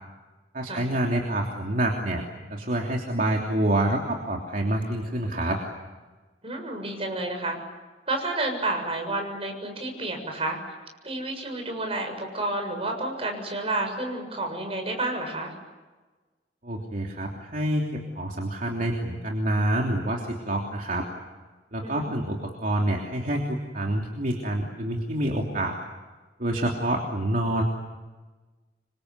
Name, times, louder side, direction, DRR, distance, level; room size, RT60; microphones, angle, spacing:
voice 1, 0.5-2.2 2.5-5.6 16.6-21.0 21.7-25.7 26.4-27.6, right 1 dB, 50° right, 0 dB, 3.2 m, -27 dB
voice 2, 6.4-7.6 8.1-10.6 11.0-15.5 21.8-22.1, right 2 dB, 35° right, 4 dB, 7.1 m, -30 dB
27.0 x 25.0 x 8.2 m, 1.3 s
head